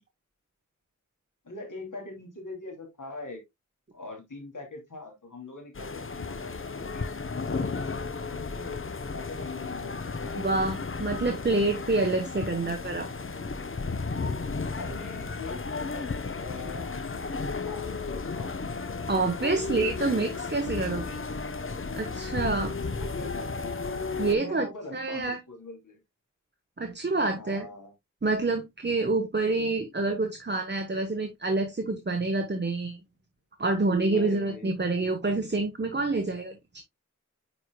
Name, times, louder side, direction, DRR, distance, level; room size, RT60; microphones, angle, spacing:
voice 1, 1.4-3.4 3.9-7.9 8.3-8.8 9.1-10.8 14.7-16.1 16.4-18.8 19.1-21.1 22.8-23.8 24.2-26.0 27.4-27.9 29.4-29.5 34.1-34.7, left 3 dB, 90° left, 2.9 m, -43 dB
sound 1, 5.7-24.3, left 4 dB, 45° left, 0.8 m, -34 dB
voice 2, 10.3-13.1 19.1-21.0 21.9-22.8 24.2-24.7 24.9-25.4 26.8-27.7 28.2-33.0 33.6-36.8, right 3 dB, 35° right, 1.1 m, -27 dB
9.6 x 4.7 x 2.2 m
wide cardioid pair, 70°, 30 cm